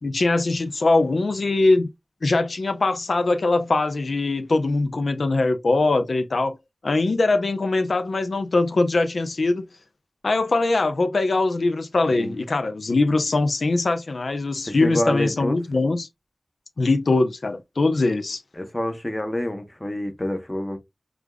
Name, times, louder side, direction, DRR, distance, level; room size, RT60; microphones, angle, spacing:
voice 1, 0.0-1.9 2.2-6.6 6.8-9.7 10.2-16.1 16.8-18.4, left 3 dB, 90° left, 0.5 m, -22 dB
voice 2, 14.6-15.6 18.5-20.8, left 1 dB, 20° left, 0.9 m, -27 dB
4.9 x 2.4 x 2.2 m
wide cardioid pair, 65°, 0 cm